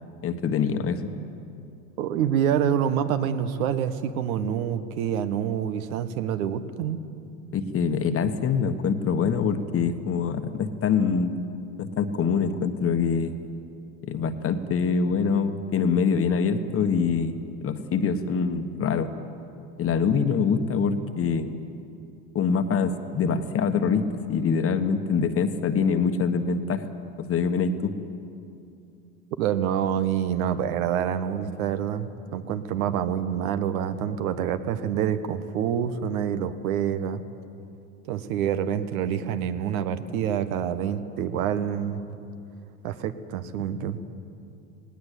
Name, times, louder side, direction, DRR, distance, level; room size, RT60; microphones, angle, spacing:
voice 1, 0.2-1.1 7.5-11.3 11.8-13.3 14.0-19.1 19.8-21.6 22.3-26.8 27.3-27.9, left 6 dB, 30° left, 9 dB, 1.4 m, -24 dB
voice 2, 2.0-7.0 29.4-37.2 38.1-42.0 42.8-44.0, right 9 dB, 70° right, 10 dB, 1.4 m, -27 dB
19.0 x 18.0 x 8.4 m, 2.6 s
supercardioid pair, 110°, 43 cm